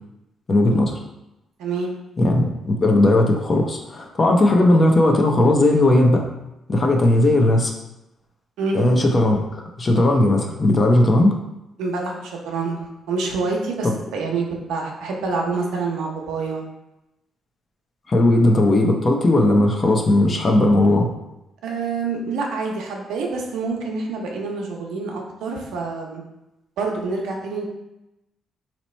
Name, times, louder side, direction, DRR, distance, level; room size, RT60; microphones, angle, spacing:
voice 1, 0.5-1.0 2.2-6.3 6.7-7.7 8.7-11.3 18.1-21.1, left 1 dB, 35° left, 2 dB, 0.7 m, -17 dB
voice 2, 1.6-1.9 8.6-8.9 11.8-12.8 13.1-16.7 21.6-26.2 26.8-27.7, right 4 dB, 90° right, 0 dB, 0.7 m, -27 dB
3.0 x 2.9 x 4.2 m, 0.93 s
cardioid pair, 90°, 0 cm